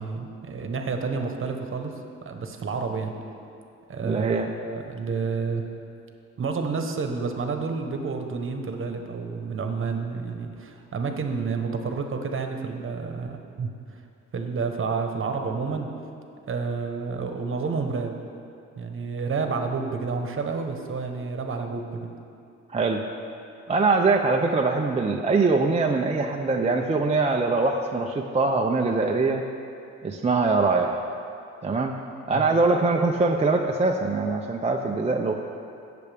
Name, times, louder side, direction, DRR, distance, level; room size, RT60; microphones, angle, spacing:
voice 1, 0.0-1.9 2.2-3.1 3.9-5.6 6.4-13.7 14.3-15.9 16.5-18.2 18.8-22.1 32.3-32.5, right 4 dB, 45° right, 4 dB, 1.1 m, -30 dB
voice 2, 4.0-4.5 22.7-23.0 23.7-29.4 30.0-31.0 31.6-31.9 32.3-35.3, right 3 dB, 20° right, 2 dB, 0.5 m, -23 dB
17.0 x 6.8 x 3.5 m, 2.6 s
cardioid pair, 90°, 30 cm